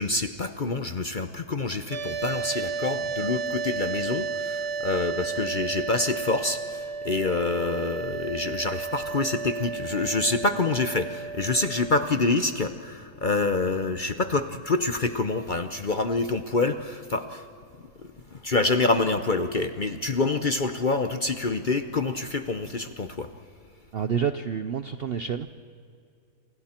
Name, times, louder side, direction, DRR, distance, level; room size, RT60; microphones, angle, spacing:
voice 1, 0.0-17.5 18.0-23.3, left 3 dB, 40° left, 9 dB, 0.8 m, -27 dB
sound 1, 1.9-12.0, right 5 dB, 85° right, 3.7 m, -33 dB
voice 2, 23.9-25.5, right 7 dB, 60° right, 10 dB, 0.6 m, -28 dB
28.5 x 27.0 x 4.4 m, 2.4 s
omnidirectional pair, 1.7 m